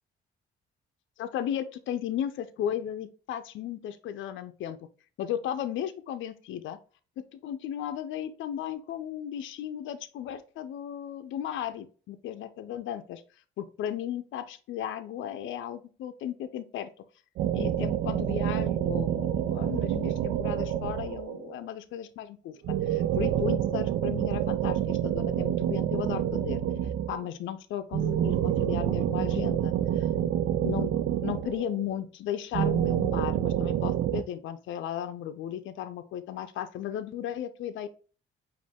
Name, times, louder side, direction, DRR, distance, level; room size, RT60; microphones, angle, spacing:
voice 1, 1.2-4.8 5.2-6.8 7.2-13.2 13.6-16.9 17.5-22.5 22.9-26.6 27.1-30.1 30.6-30.9 31.2-37.9, left 10 dB, 80° left, 10 dB, 0.5 m, -35 dB
sound 1, 17.4-21.5 22.6-27.3 27.9-31.9 32.5-34.2, right 11 dB, 75° right, 0.5 m, -28 dB
5.1 x 2.6 x 3.5 m, 0.37 s
cardioid pair, 90°, 20 cm